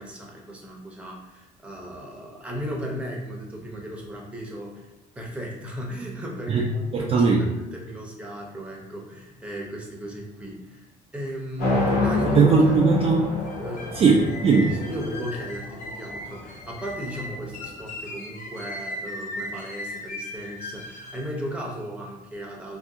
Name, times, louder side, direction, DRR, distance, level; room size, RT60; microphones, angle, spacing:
voice 1, 0.0-4.9 5.2-10.9 11.1-12.8 13.6-14.0 14.7-22.8, right 1 dB, 5° right, -2 dB, 0.7 m, -35 dB
voice 2, 6.9-7.4 12.3-13.3 13.9-14.7, right 4 dB, 35° right, -2 dB, 0.4 m, -18 dB
sound 1, 11.6-17.7, left 3 dB, 65° left, 1.3 m, -29 dB
sound 2, 13.5-21.3, left 1 dB, 45° left, 0.6 m, -38 dB
2.6 x 2.3 x 3.5 m, 0.99 s
cardioid pair, 110°, 17 cm